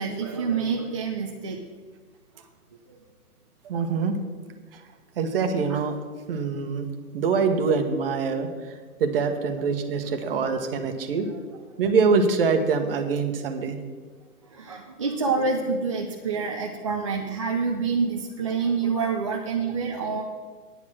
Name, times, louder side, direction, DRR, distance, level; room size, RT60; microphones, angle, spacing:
voice 1, 0.0-1.6 2.9-3.0 5.7-5.8 14.5-20.2, right 5 dB, 20° right, -1 dB, 0.5 m, -27 dB
voice 2, 3.6-4.1 4.7-4.8 5.2-5.9 6.3-6.9 7.1-8.7 9.0-11.3 11.8-13.8, right 5 dB, 40° right, 6 dB, 1.3 m, -24 dB
9.9 x 9.5 x 6.2 m, 1.5 s
hypercardioid pair, 140°, 46 cm